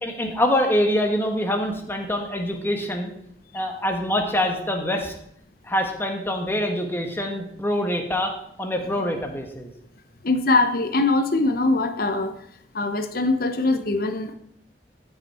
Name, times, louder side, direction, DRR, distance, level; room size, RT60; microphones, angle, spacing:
voice 1, 0.0-3.1 3.5-5.1 5.6-9.7, left 1 dB, 15° left, 3 dB, 1.4 m, -25 dB
voice 2, 10.2-12.3 12.7-14.4, left 2 dB, 55° left, 9 dB, 0.9 m, -22 dB
14.0 x 5.9 x 4.4 m, 0.71 s
head